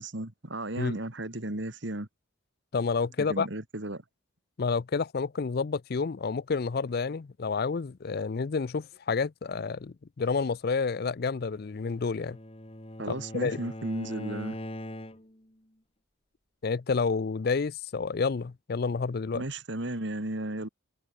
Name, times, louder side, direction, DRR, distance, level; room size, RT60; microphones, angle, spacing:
voice 1, 0.0-2.1 3.2-4.0 13.0-14.6 19.3-20.7, right 1 dB, 55° right, 2.2 m, -34 dB
voice 2, 2.7-3.5 4.6-12.4 13.1-13.6 16.6-19.4, left 4 dB, 45° left, 0.4 m, -29 dB
Bowed string instrument, 11.6-15.5, left 1 dB, 25° left, 2.8 m, -41 dB
head